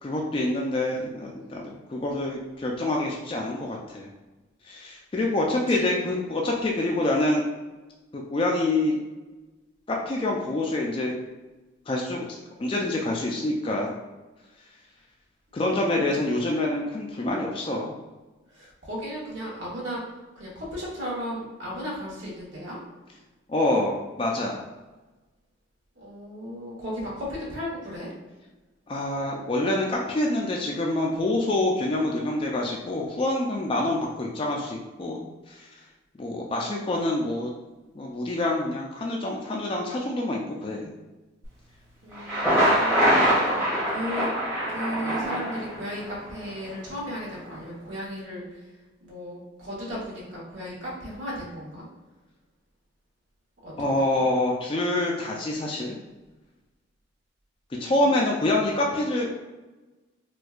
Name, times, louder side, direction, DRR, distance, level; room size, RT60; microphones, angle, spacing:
voice 1, 0.0-4.1 4.7-7.4 8.1-9.0 9.9-11.1 11.9-12.3 12.6-13.9 15.5-17.9 23.5-24.6 28.9-35.7 36.2-37.5 37.9-40.9 53.8-55.9 57.8-59.3, left 1 dB, 25° left, -2 dB, 0.3 m, -26 dB
voice 2, 5.4-6.0 15.7-16.2 18.5-20.1 20.3-22.8 25.9-28.1 42.0-44.3 44.7-48.7 49.0-51.9 53.6-53.9 57.9-58.1, equal, 75° right, -6 dB, 1.2 m, -36 dB
Thunder, 42.1-46.1, equal, 15° right, 0.9 m, -23 dB
4.2 x 2.2 x 2.4 m, 1.2 s
head